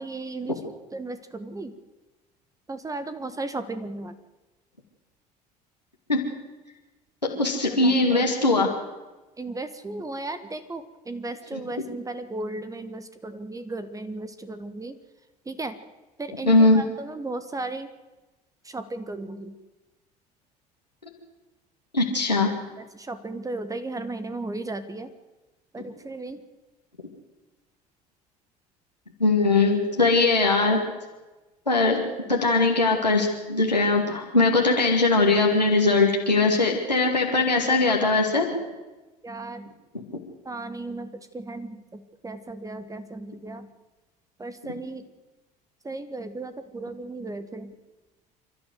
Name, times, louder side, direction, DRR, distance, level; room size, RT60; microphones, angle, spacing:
voice 1, 0.0-1.7 2.7-4.2 7.3-7.4 7.7-8.3 9.4-14.9 15.5-15.7 16.2-17.9 18.7-19.5 22.8-25.1 25.7-26.4 39.2-39.7 40.4-43.7 44.4-45.0 45.8-47.7, right 2 dB, 15° right, 10 dB, 1.6 m, -35 dB
voice 2, 7.4-8.7 11.5-11.6 16.4-16.8 21.9-22.5 29.2-30.8 31.7-32.0 32.3-38.5 39.9-40.2, left 3 dB, 90° left, -1 dB, 2.4 m, -20 dB
28.0 x 13.0 x 7.9 m, 1.1 s
figure-of-eight pair, 65°, 21 cm